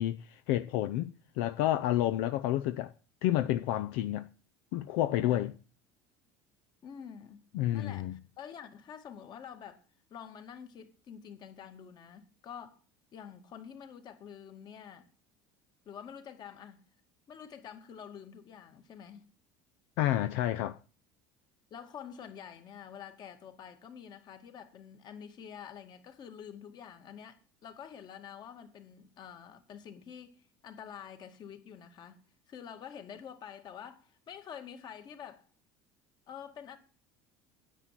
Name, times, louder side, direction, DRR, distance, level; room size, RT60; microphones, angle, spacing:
voice 1, 0.0-2.9 3.2-4.3 4.7-5.5 7.5-8.1 20.0-20.8, left 13 dB, 75° left, 0.6 m, -30 dB
voice 2, 6.8-7.5 7.7-9.8 10.1-12.8 13.1-15.1 15.9-16.8 17.3-19.3 21.7-35.5 36.3-36.8, left 8 dB, 45° left, 2.1 m, -48 dB
9.9 x 8.3 x 7.6 m
supercardioid pair, 110°, 10 cm